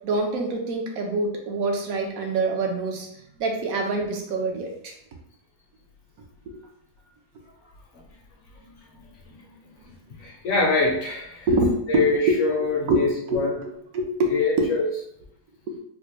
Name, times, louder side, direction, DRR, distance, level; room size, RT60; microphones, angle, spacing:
voice 1, 0.0-3.1 3.4-4.9 11.5-13.0 13.3-14.7 15.7-15.8, right 2 dB, 70° right, 2 dB, 1.1 m, -25 dB
voice 2, 10.2-11.5 11.9-13.6 14.3-14.9, left 3 dB, 60° left, -2 dB, 0.9 m, -24 dB
4.1 x 2.2 x 3.0 m, 0.75 s
omnidirectional pair, 1.7 m